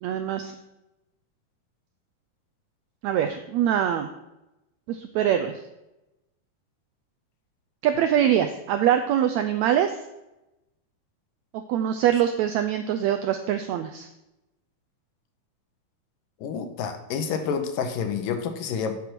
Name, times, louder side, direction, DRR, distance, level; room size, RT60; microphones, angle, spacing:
voice 1, 0.0-0.5 3.0-4.1 4.9-5.5 7.8-10.0 11.5-14.1, right 10 dB, 85° right, 7 dB, 1.6 m, -23 dB
voice 2, 16.4-19.0, left 6 dB, 85° left, 7 dB, 2.7 m, -29 dB
8.4 x 7.1 x 6.0 m, 0.94 s
omnidirectional pair, 3.8 m